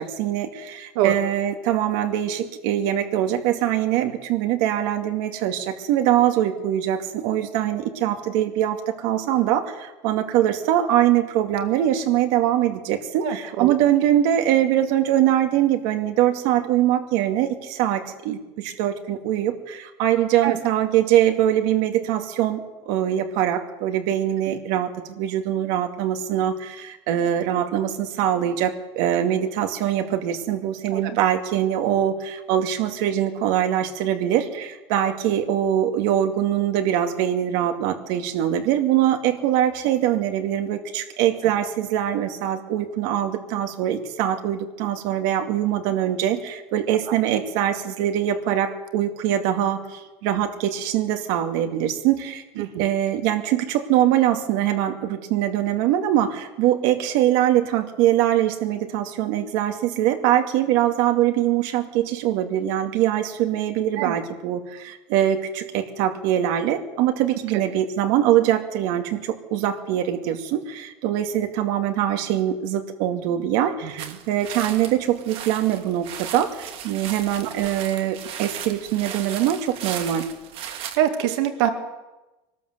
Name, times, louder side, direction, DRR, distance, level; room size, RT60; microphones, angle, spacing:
voice 1, 0.0-80.3, right 11 dB, 65° right, 5 dB, 2.3 m, -23 dB
voice 2, 13.2-13.7 20.4-20.6 24.5-24.6 30.9-31.0 52.6-52.8 64.0-64.1 81.0-81.7, right 11 dB, 85° right, 6 dB, 2.2 m, -24 dB
sound 1, 74.0-81.0, right 9 dB, 45° right, 2.2 m, -36 dB
23.5 x 19.5 x 8.0 m, 1.1 s
cardioid pair, 175°, 13 cm